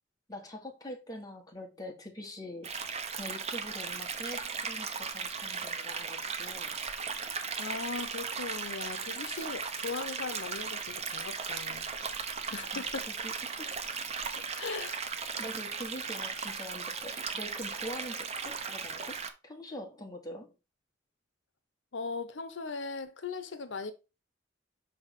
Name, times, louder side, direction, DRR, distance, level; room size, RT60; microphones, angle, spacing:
voice 1, 0.3-2.7 3.1-6.8 12.5-13.7 14.8-14.9 15.4-20.5, equal, 20° left, 1.5 m, -44 dB
sound 1, 2.6-19.3, right 5 dB, 35° right, 0.7 m, -37 dB
voice 2, 7.6-11.9 12.5-13.1 14.3-15.0 21.9-23.9, left 4 dB, 80° left, 0.7 m, -39 dB
5.7 x 3.5 x 5.1 m
head